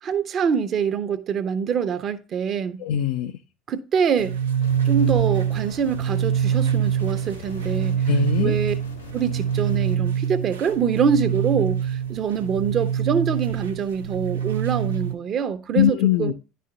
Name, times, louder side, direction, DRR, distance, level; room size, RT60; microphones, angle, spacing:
voice 1, 0.0-2.8 3.7-4.4 4.9-8.0 8.4-8.7 9.1-16.3, right 7 dB, 45° right, 0.8 m, -25 dB
voice 2, 2.8-3.3 8.1-8.6 15.7-16.3, left 10 dB, 65° left, 0.4 m, -21 dB
sound 1, 4.2-15.1, right 8 dB, 85° right, 0.6 m, -25 dB
sound 2, 4.6-9.9, left 3 dB, 90° left, 1.3 m, -43 dB
10.0 x 4.2 x 3.8 m
hypercardioid pair, 70°, 0 cm